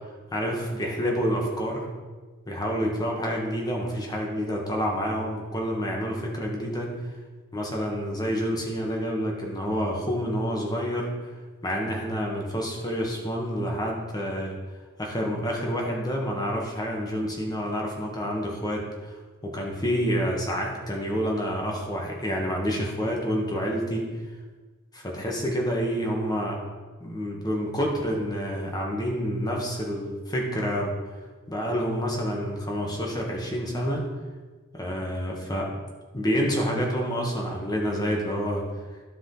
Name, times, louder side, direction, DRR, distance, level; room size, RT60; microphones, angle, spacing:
voice 1, 0.3-1.9 2.5-6.9 7.5-11.1 11.6-14.5 15.0-19.2 19.4-24.1 24.9-26.6 27.0-30.9 31.5-34.0 34.7-35.7 36.1-38.6, equal, 20° left, -1 dB, 1.4 m, -28 dB
12.0 x 4.9 x 3.9 m, 1.4 s
head